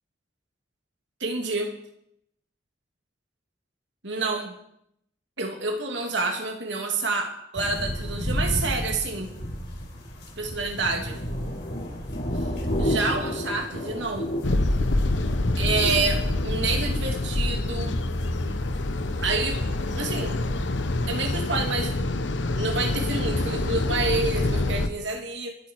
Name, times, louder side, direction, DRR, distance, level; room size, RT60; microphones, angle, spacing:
voice 1, 1.2-1.7 4.0-4.5 5.4-9.3 10.4-11.2 12.3-12.5 12.8-14.3 15.6-18.0 19.2-19.6 20.0-20.3 21.1-21.9 22.6-25.6, right 3 dB, 75° right, 2 dB, 2.9 m, -28 dB
sound 1, 7.5-21.2 21.6-21.7, equal, 65° left, 5.1 m, -32 dB
sound 2, 14.4-24.9, left 2 dB, 90° left, 1.0 m, -26 dB
25.5 x 8.8 x 4.8 m, 0.75 s
head